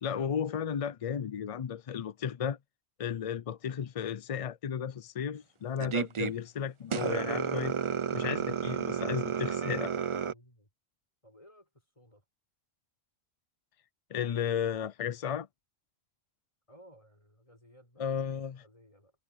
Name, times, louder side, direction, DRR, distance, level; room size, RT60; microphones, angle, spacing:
voice 1, 0.0-2.6 3.0-7.7 8.1-9.9 14.1-15.5 18.0-18.6, left 8 dB, 50° left, 0.4 m, -34 dB
sound 1, 5.8-6.3 6.9-10.3, right 7 dB, 40° right, 0.5 m, -31 dB
voice 2, 10.2-10.7 11.2-12.2 16.7-19.1, equal, 30° left, 6.0 m, -59 dB
omnidirectional pair, 1.1 m